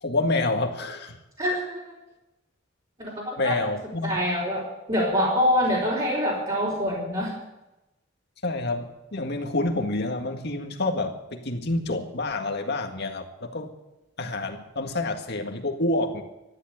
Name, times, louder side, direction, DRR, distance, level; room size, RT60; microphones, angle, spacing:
voice 1, 0.0-1.2 3.4-4.1 8.4-13.7 14.2-16.2, left 2 dB, 60° left, 4 dB, 1.9 m, -28 dB
voice 2, 1.4-1.9 3.0-3.6 4.0-7.4, equal, 30° right, -7 dB, 4.3 m, -25 dB
13.5 x 11.5 x 8.0 m, 0.96 s
head